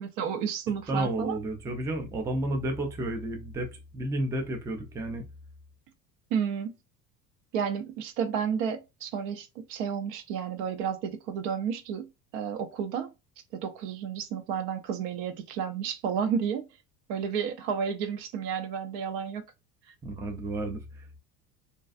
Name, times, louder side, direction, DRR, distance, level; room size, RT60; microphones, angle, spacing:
voice 1, 0.0-1.4 6.3-6.7 7.5-13.1 13.5-16.7 17.1-19.4, right 7 dB, 55° right, 0.6 m, -31 dB
voice 2, 0.9-5.2 20.0-21.2, right 1 dB, 5° right, 0.3 m, -32 dB
2.5 x 2.3 x 2.4 m
figure-of-eight pair, 65°, 48 cm